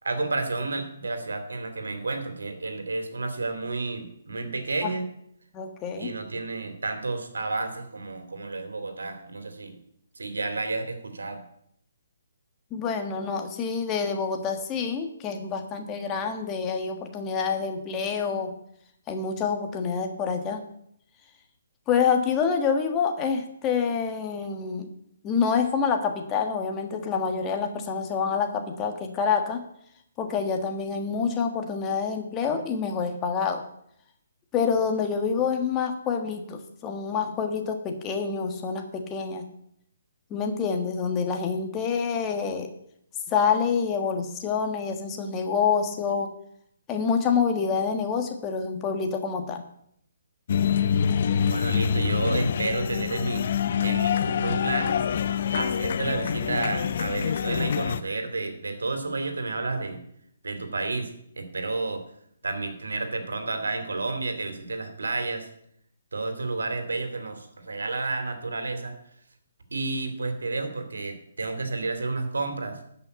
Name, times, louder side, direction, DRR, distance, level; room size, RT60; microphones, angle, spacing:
voice 1, 0.0-5.1 6.0-9.8 10.2-11.4 51.4-53.5 53.8-55.0 55.5-60.0 60.4-62.0 62.4-65.5 66.1-68.9 69.7-72.8, right 3 dB, 90° right, 7 dB, 2.5 m, -31 dB
voice 2, 5.5-6.1 12.7-18.5 19.1-20.6 21.9-24.9 25.2-29.6 30.2-33.6 34.5-39.4 40.3-42.7 43.3-46.3 46.9-49.6, left 6 dB, 20° left, 5 dB, 1.5 m, -27 dB
sound 1, 50.5-58.0, left 7 dB, 55° left, 0.7 m, -26 dB
12.5 x 5.8 x 8.3 m, 0.71 s
hypercardioid pair, 155°, 0 cm